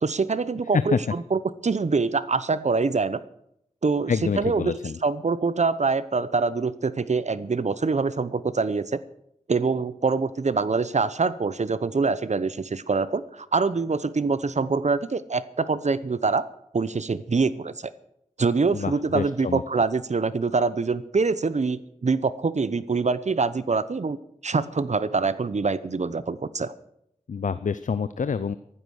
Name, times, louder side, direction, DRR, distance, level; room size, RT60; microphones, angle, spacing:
voice 1, 0.0-3.2 3.8-4.7 5.0-9.0 9.5-16.4 16.7-17.9 18.4-24.2 24.4-26.7, right 4 dB, 65° right, 16 dB, 0.9 m, -25 dB
voice 2, 4.1-5.0 18.7-19.6 27.3-28.6, left 6 dB, 80° left, 14 dB, 0.5 m, -27 dB
15.0 x 12.5 x 6.5 m, 0.75 s
wide cardioid pair, 55°, 13 cm